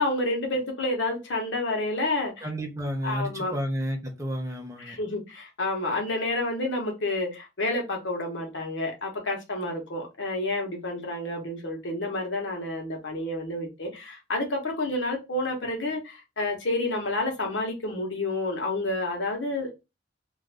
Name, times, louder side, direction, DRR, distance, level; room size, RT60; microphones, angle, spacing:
voice 1, 0.0-2.5 3.0-3.5 4.8-19.7, left 2 dB, 75° left, 1.0 m, -29 dB
voice 2, 2.4-5.0, equal, 15° right, 0.7 m, -31 dB
2.6 x 2.5 x 3.3 m
head